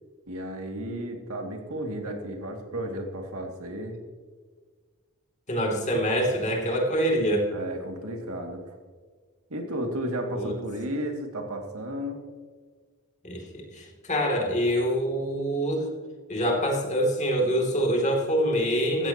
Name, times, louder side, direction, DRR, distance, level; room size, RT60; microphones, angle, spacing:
voice 1, 0.3-4.0 7.5-8.8 9.5-12.2, right 1 dB, 80° right, 2 dB, 2.3 m, -33 dB
voice 2, 5.5-7.5 10.3-10.5 13.2-15.9 16.3-19.1, equal, 35° left, 1 dB, 2.8 m, -25 dB
16.0 x 14.5 x 3.0 m, 1.5 s
head